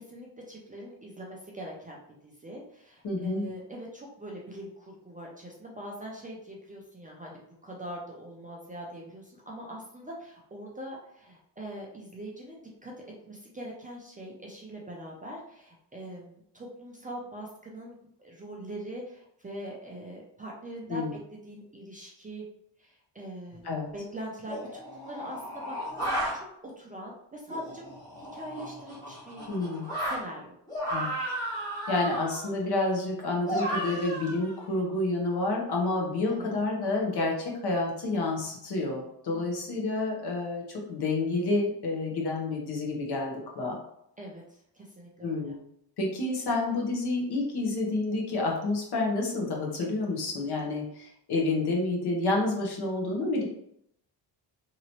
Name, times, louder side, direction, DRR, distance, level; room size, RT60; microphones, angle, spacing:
voice 1, 0.0-12.9 13.2-21.1 21.4-22.5 22.8-29.5 30.0-30.5 36.3-36.5 39.3-39.7 44.2-45.6, right 1 dB, 20° right, -3 dB, 0.4 m, -42 dB
voice 2, 3.0-3.5 20.9-21.1 23.6-23.9 29.5-29.9 30.9-31.1 31.9-43.8 45.2-45.6 46.0-53.4, left 2 dB, 65° left, -1 dB, 1.0 m, -29 dB
sound 1, 23.5-23.6 24.5-26.4 27.5-30.2 30.7-32.5 33.5-34.8, right 1 dB, 10° left, 1.0 m, -34 dB
2.9 x 2.8 x 2.9 m, 0.74 s
wide cardioid pair, 160°, 43 cm